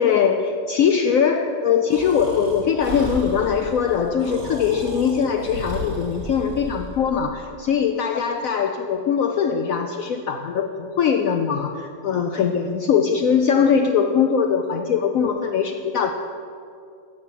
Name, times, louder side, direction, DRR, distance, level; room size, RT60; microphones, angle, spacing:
voice 1, 0.0-16.1, left 7 dB, 70° left, 5 dB, 0.8 m, -21 dB
Breathing, 1.9-7.0, right 1 dB, 55° right, 2.2 m, -34 dB
9.0 x 7.1 x 7.7 m, 2.5 s
omnidirectional pair, 1.9 m